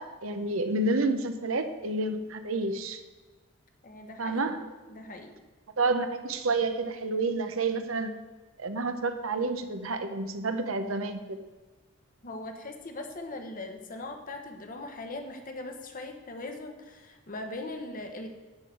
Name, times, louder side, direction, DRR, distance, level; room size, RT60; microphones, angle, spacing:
voice 1, 0.0-3.0 4.2-4.6 5.8-8.1 8.6-11.4, right 3 dB, 80° right, 8 dB, 0.9 m, -29 dB
voice 2, 3.8-4.5 4.9-5.3 12.2-18.3, left 2 dB, 40° left, 5 dB, 1.1 m, -40 dB
10.5 x 3.9 x 7.6 m, 1.3 s
head